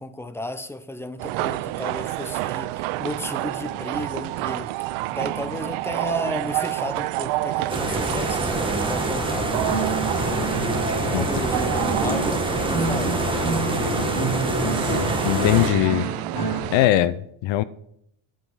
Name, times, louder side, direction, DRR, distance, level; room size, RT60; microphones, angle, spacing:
voice 1, 0.0-9.7 11.0-13.4, left 1 dB, 5° left, 0.6 m, -33 dB
sound 1, 1.2-16.9, right 17 dB, 80° right, 0.6 m, -29 dB
sound 2, 7.7-15.7, right 2 dB, 10° right, 1.7 m, -26 dB
sound 3, 9.4-16.6, right 1 dB, 50° left, 3.9 m, -29 dB
voice 2, 15.2-16.1 16.7-17.6, left 14 dB, 70° left, 0.7 m, -20 dB
9.2 x 7.7 x 6.2 m
cardioid pair, 135°, 47 cm